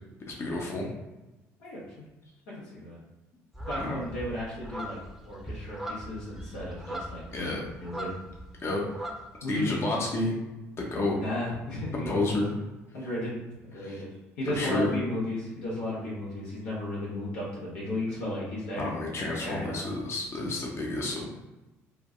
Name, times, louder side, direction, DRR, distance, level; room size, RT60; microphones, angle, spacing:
voice 1, 0.4-0.9 3.8-3.9 7.3-7.7 8.6-8.8 9.5-10.3 10.8-11.2 11.9-12.5 13.0-13.1 13.8-14.0 14.5-14.9 18.8-21.3, left 2 dB, 40° left, -1 dB, 0.7 m, -30 dB
voice 2, 1.6-2.0 2.7-3.0 3.7-5.0 5.2-8.1 9.4-9.8 11.2-12.2 12.9-13.4 13.6-14.1 14.4-18.9 19.4-19.8, left 1 dB, 85° left, -6 dB, 1.2 m, -34 dB
sound 1, 3.5-8.5 8.8-9.8, right 1 dB, ahead, 0.6 m, -39 dB
3.2 x 2.2 x 2.4 m, 1.1 s
hypercardioid pair, 60°, 7 cm